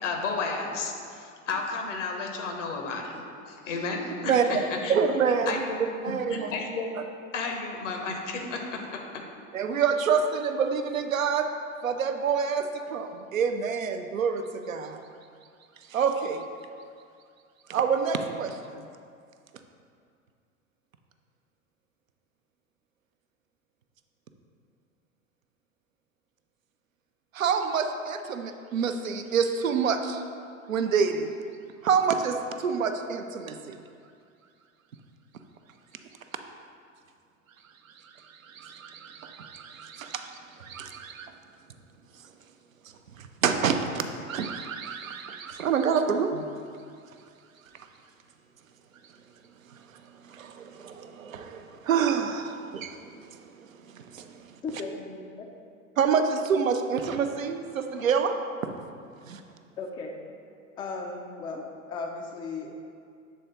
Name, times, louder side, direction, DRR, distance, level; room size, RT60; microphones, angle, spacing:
voice 1, 0.0-5.0 5.5-5.9 6.3-6.9 7.3-9.2, left 4 dB, 65° left, 2 dB, 0.9 m, -32 dB
voice 2, 4.9-6.5 9.5-11.5 11.8-15.0 15.9-16.4 17.7-18.8 27.3-30.2 30.7-31.3 31.8-33.8 38.4-40.3 40.6-41.3 43.2-46.4 49.7-49.8 50.3-53.5 53.9-54.3 56.0-58.3 59.2-59.4, right 6 dB, 80° right, 6 dB, 0.5 m, -27 dB
voice 3, 54.6-55.5 59.8-60.2 60.8-62.7, left 4 dB, 15° left, 2 dB, 0.3 m, -36 dB
7.6 x 3.4 x 3.9 m, 2.3 s
figure-of-eight pair, 80°, 40 cm